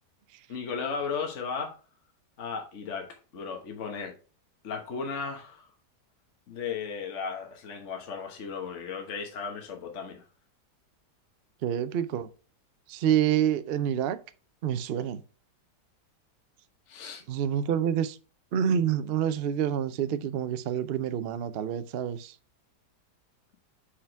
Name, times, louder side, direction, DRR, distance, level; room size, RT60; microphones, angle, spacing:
voice 1, 0.5-1.7 2.4-4.1 4.6-5.7 6.5-10.2 16.9-17.2, left 5 dB, 50° left, 1.4 m, -35 dB
voice 2, 11.6-12.3 12.9-14.2 14.6-15.2 17.3-18.2 18.5-22.3, right 9 dB, 90° right, 0.5 m, -27 dB
5.7 x 4.9 x 4.5 m
omnidirectional pair, 1.8 m